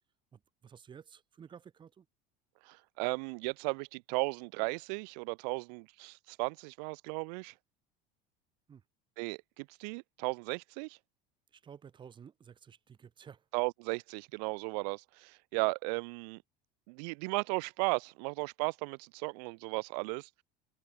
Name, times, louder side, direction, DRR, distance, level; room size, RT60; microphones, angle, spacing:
voice 1, 0.3-2.1 8.7-8.8 11.5-13.5, right 7 dB, 25° right, 2.1 m, -53 dB
voice 2, 2.6-7.5 9.2-11.0 13.5-16.4 16.9-20.4, right 32 dB, 85° right, 0.4 m, -35 dB
cardioid pair, 160°, 21 cm